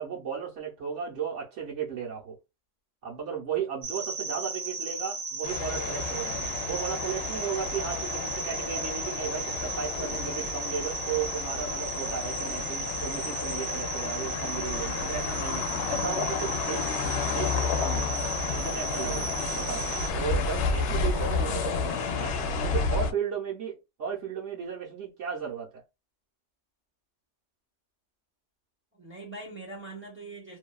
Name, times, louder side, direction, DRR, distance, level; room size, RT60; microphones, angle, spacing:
voice 1, 0.0-2.4 3.0-6.4 6.7-16.9 17.1-18.2 18.5-19.9 20.1-25.8, right 7 dB, 75° right, 1.1 m, -35 dB
sound 1, 3.8-20.1, right 3 dB, 45° right, 0.9 m, -35 dB
sound 2, 5.4-23.1, left 5 dB, 70° left, 0.8 m, -31 dB
sound 3, 16.1-18.9 19.3-22.5, equal, 15° left, 0.8 m, -45 dB
voice 2, 28.9-30.6, right 2 dB, 15° right, 0.5 m, -43 dB
2.7 x 2.2 x 2.2 m
omnidirectional pair, 1.2 m